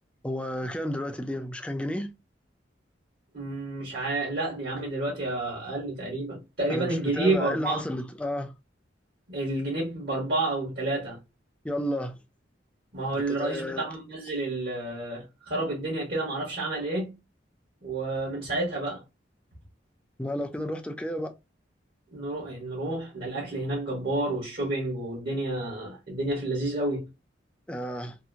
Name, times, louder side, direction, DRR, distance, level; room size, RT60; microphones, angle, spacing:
voice 1, 0.2-2.1 6.7-8.5 11.6-12.1 13.1-13.9 20.2-21.3 27.7-28.2, left 1 dB, 5° left, 0.4 m, -32 dB
voice 2, 3.3-7.8 9.3-11.2 12.9-17.2 17.8-19.0 22.1-27.0, right 2 dB, 55° right, 1.2 m, -30 dB
2.8 x 2.5 x 2.4 m
head